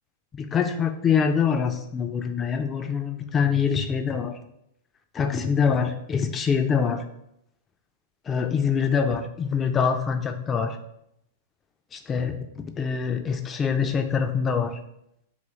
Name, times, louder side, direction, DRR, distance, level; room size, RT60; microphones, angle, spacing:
voice 1, 0.3-4.3 5.1-7.0 8.3-10.8 11.9-14.8, left 6 dB, 25° left, 7 dB, 0.3 m, -24 dB
2.9 x 2.4 x 2.8 m, 0.78 s
figure-of-eight pair, 100°, 0 cm